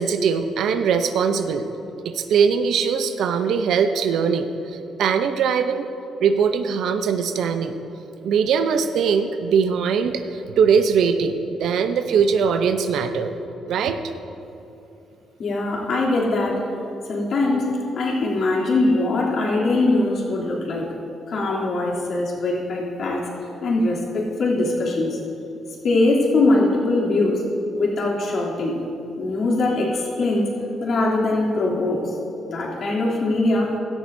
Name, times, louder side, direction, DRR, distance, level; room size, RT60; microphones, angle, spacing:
voice 1, 0.0-1.7 2.0-5.9 6.2-7.7 8.2-13.3 13.6-14.0, right 6 dB, 75° right, 8 dB, 0.7 m, -21 dB
voice 2, 15.4-16.6 17.1-20.9 21.3-23.3 23.6-25.2 25.8-27.4 27.7-28.8 29.2-30.5 30.8-32.1 32.5-33.7, left 2 dB, 60° left, -5 dB, 3.1 m, -22 dB
17.0 x 13.0 x 2.7 m, 2.8 s
cardioid pair, 90°, 0 cm